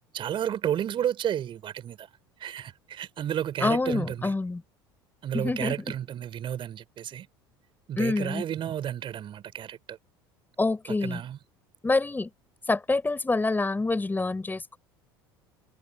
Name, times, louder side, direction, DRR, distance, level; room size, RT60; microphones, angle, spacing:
voice 1, 0.1-2.1 2.4-4.3 5.2-7.3 7.9-10.0 11.0-11.4, right 10 dB, 40° right, 4.6 m, -32 dB
voice 2, 3.6-4.6 5.3-5.9 8.0-8.4 10.6-11.2 11.8-12.3 12.7-14.8, left 3 dB, 15° left, 6.6 m, -26 dB
figure-of-eight pair, 70°, 13 cm